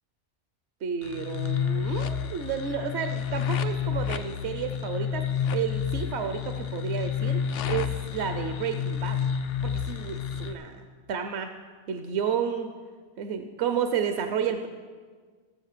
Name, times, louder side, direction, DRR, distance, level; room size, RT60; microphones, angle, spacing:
voice 1, 0.8-9.2 9.6-11.5 11.9-12.7 13.2-14.7, right 7 dB, 65° right, 7 dB, 1.0 m, -31 dB
sound 1, 1.0-10.5, left 7 dB, 80° left, 1.0 m, -30 dB
15.5 x 7.2 x 6.6 m, 1.5 s
omnidirectional pair, 1.2 m